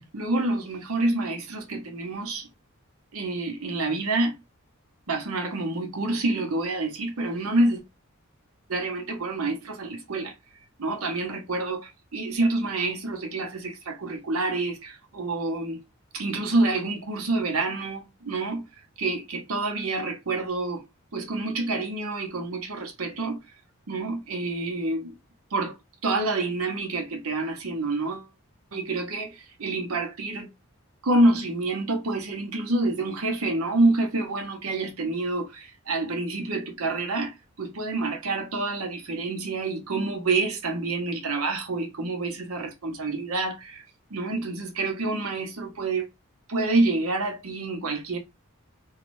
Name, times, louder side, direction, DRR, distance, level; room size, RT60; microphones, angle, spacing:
voice 1, 0.1-2.5 3.1-4.4 5.1-7.8 8.7-10.3 10.8-15.8 16.1-18.6 19.0-20.8 21.1-23.4 23.9-25.1 25.5-25.8 26.0-28.3 28.7-29.3 29.6-30.5 31.0-43.8 44.1-46.1 46.5-48.2, right 2 dB, 85° right, 0.8 m, -27 dB
2.5 x 2.4 x 3.1 m
head